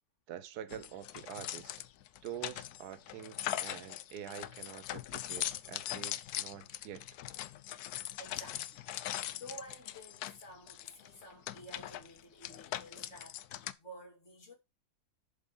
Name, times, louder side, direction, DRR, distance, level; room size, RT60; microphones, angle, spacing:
voice 1, 0.3-1.7 2.2-7.0, right 10 dB, 80° right, 1.4 m, -46 dB
sound 1, 0.7-13.7, left 13 dB, 80° left, 1.1 m, -41 dB
voice 2, 8.2-14.5, equal, 50° left, 2.6 m, -52 dB
7.4 x 5.0 x 5.2 m
omnidirectional pair, 1.7 m